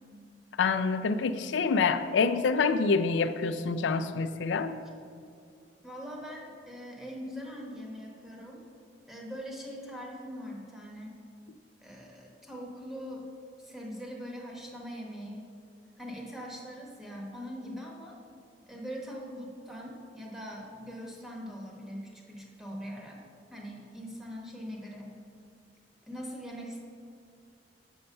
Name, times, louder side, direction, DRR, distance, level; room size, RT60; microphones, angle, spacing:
voice 1, 0.6-4.8, left 4 dB, 90° left, 11 dB, 0.4 m, -27 dB
voice 2, 5.8-8.6 9.1-11.1 11.8-13.2 13.6-15.4 16.0-18.2 18.7-23.2 23.5-25.1 26.0-26.8, equal, ahead, -2 dB, 0.9 m, -42 dB
6.5 x 5.7 x 5.3 m, 2.3 s
head